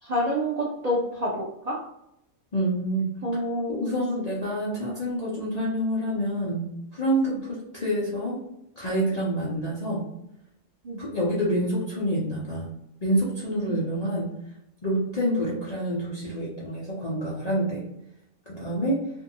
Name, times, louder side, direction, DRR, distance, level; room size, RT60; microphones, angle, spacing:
voice 1, 0.0-1.8 3.2-4.0 7.2-7.4 10.8-11.0 13.5-13.8, equal, 80° right, -4 dB, 0.3 m, -28 dB
voice 2, 2.5-3.1 3.7-8.4 8.8-10.0 11.0-12.7 13.0-14.3 14.8-17.8 18.5-19.1, right 1 dB, 45° left, -7 dB, 0.5 m, -27 dB
2.7 x 2.6 x 2.6 m, 0.81 s
omnidirectional pair, 1.5 m